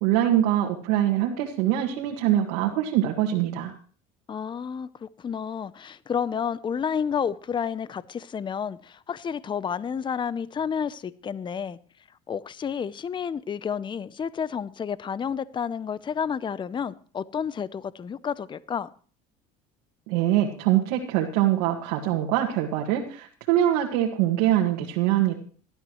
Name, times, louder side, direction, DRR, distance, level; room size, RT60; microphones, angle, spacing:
voice 1, 0.0-3.7 20.1-25.4, right 12 dB, 80° right, 2.0 m, -23 dB
voice 2, 4.3-11.8 12.3-18.9, left 7 dB, 25° left, 0.6 m, -30 dB
18.5 x 12.0 x 3.1 m
supercardioid pair, 100°, 20 cm